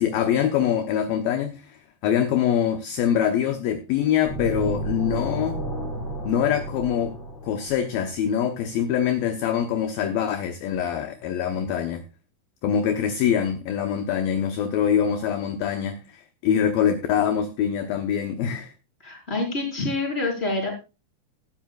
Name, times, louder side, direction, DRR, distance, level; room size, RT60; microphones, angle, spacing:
voice 1, 0.0-1.8 2.0-5.6 6.2-7.2 7.4-12.0 12.6-18.7, left 9 dB, 75° left, 6 dB, 2.3 m, -24 dB
sound 1, 4.2-8.1, right 1 dB, 40° left, 4.9 m, -31 dB
voice 2, 19.0-20.8, left 2 dB, 15° left, 0 dB, 4.4 m, -27 dB
16.5 x 12.5 x 2.4 m, 0.30 s
omnidirectional pair, 5.0 m